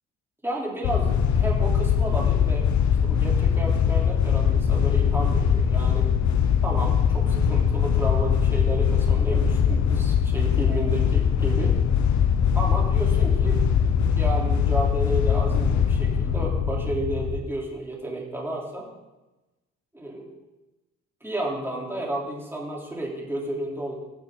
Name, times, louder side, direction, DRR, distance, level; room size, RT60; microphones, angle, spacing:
voice 1, 0.4-1.1 1.4-2.7 3.0-6.1 6.6-11.8 12.5-18.9 19.9-20.3 21.2-23.9, right 1 dB, 10° right, -3 dB, 3.5 m, -32 dB
sound 1, 0.8-17.4, left 7 dB, 70° left, 1.0 m, -21 dB
19.5 x 7.2 x 3.9 m, 1.1 s
cardioid pair, 90°, 30 cm